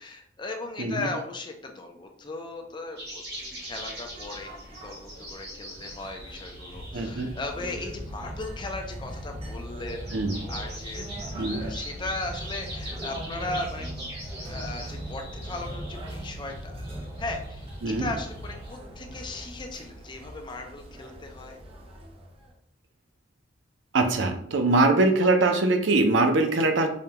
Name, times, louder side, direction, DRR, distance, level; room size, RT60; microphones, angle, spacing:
voice 1, 0.0-4.5 4.8-10.2 10.5-11.1 11.3-13.9 14.5-16.8 17.2-21.6, left 2 dB, 25° left, 4 dB, 0.5 m, -37 dB
sound 1, 3.0-18.7, equal, 60° right, 1.1 m, -43 dB
sound 2, 3.3-22.5, right 1 dB, 30° right, 0.6 m, -40 dB
voice 2, 6.9-7.3 10.1-10.3 11.4-11.6 17.8-18.1 23.9-26.9, right 2 dB, 75° right, 6 dB, 0.5 m, -22 dB
5.0 x 2.3 x 2.9 m, 0.65 s
head